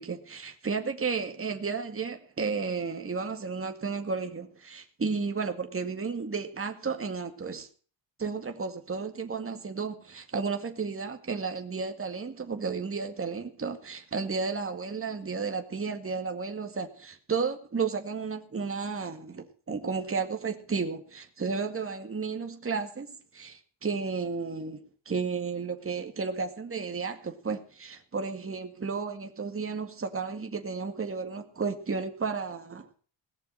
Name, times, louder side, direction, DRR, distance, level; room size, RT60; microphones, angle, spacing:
voice 1, 0.0-7.7 8.2-23.1 23.3-32.9, right 5 dB, 30° right, 2.0 m, -33 dB
18.5 x 6.9 x 8.8 m
cardioid pair, 105°, 47 cm